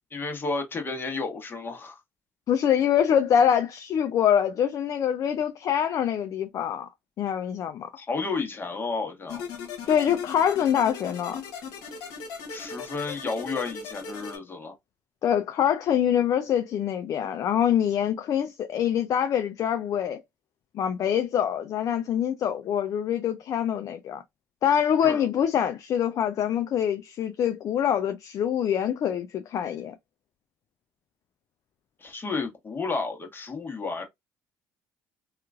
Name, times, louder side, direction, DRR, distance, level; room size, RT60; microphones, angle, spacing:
voice 1, 0.1-2.0 8.0-9.4 12.5-14.7 25.0-25.3 32.0-34.0, left 4 dB, 30° left, 1.1 m, -32 dB
voice 2, 2.5-6.9 7.2-7.9 9.9-11.4 15.2-20.2 20.7-24.2 24.6-29.9, left 9 dB, 55° left, 0.4 m, -25 dB
sound 1, 9.3-14.4, left 5 dB, 80° left, 1.0 m, -38 dB
2.9 x 2.4 x 2.3 m
supercardioid pair, 70°, 7 cm